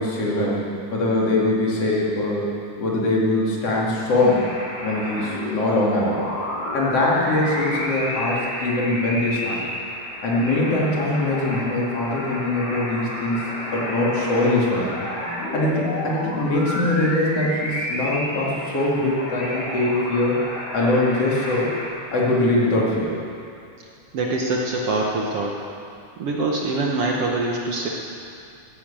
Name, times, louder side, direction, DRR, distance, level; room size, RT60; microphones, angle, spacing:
voice 1, 0.0-4.5 4.8-6.2 6.7-9.6 10.2-13.4 13.7-14.9 15.5-20.4 20.7-21.7 22.1-23.1, left 2 dB, 50° left, -5 dB, 3.5 m, -22 dB
sound 1, 4.2-21.9, equal, 90° left, 6.1 m, -31 dB
voice 2, 24.1-25.6 26.2-27.9, right 2 dB, 60° right, -1 dB, 1.8 m, -24 dB
15.5 x 10.5 x 7.5 m, 2.5 s
omnidirectional pair, 3.6 m